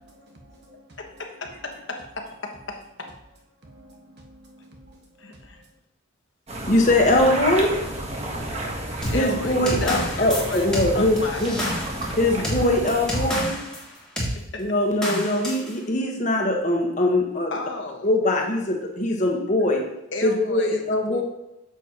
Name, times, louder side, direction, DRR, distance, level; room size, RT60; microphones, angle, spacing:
voice 1, 0.1-1.0 3.6-5.0, right 1 dB, 55° right, 0 dB, 1.6 m, -50 dB
voice 2, 1.0-3.1 5.2-5.6 9.1-11.9 14.5-14.6 17.5-18.1 20.1-20.8 21.1-21.2, left 3 dB, 70° left, 3 dB, 1.3 m, -34 dB
sound 1, 6.5-13.4, right 1 dB, 30° right, 1.2 m, -31 dB
voice 3, 6.7-7.7 9.1-11.6 12.2-13.6 14.6-17.5 18.0-19.9 20.2-21.2, left 1 dB, 35° left, 1 dB, 1.3 m, -22 dB
sound 2, 9.0-13.8 14.2-14.4 15.0-15.7, equal, 5° left, 2.0 m, -28 dB
9.8 x 7.1 x 3.0 m, 0.89 s
head